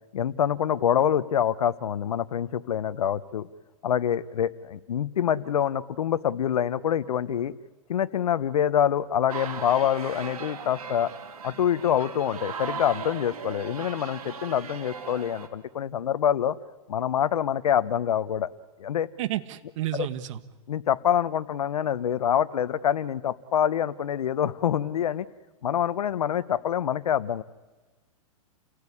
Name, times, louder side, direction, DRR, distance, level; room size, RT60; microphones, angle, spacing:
voice 1, 0.1-3.5 3.8-7.5 7.9-11.1 11.4-16.6 16.9-18.5 18.8-19.1 20.7-25.3 25.6-27.4, left 9 dB, 90° left, 13 dB, 1.0 m, -26 dB
sound 1, 9.3-15.5, right 6 dB, 90° right, 3.3 m, -38 dB
voice 2, 19.2-20.4, right 13 dB, 60° right, 12 dB, 1.6 m, -31 dB
29.0 x 17.0 x 9.9 m, 1.2 s
hypercardioid pair, 140°, 19 cm